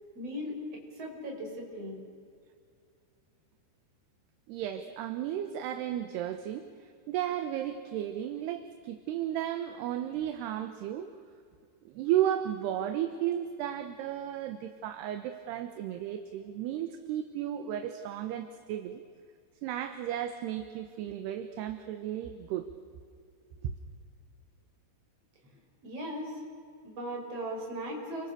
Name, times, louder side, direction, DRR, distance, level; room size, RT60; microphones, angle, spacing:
voice 1, 0.1-2.0 25.8-26.3 26.8-28.3, equal, 35° right, 0 dB, 6.0 m, -38 dB
voice 2, 4.5-11.1 11.9-19.0 19.6-22.7 23.6-23.7, right 11 dB, 75° right, 8 dB, 2.9 m, -34 dB
29.5 x 24.0 x 6.7 m, 2.2 s
omnidirectional pair, 5.3 m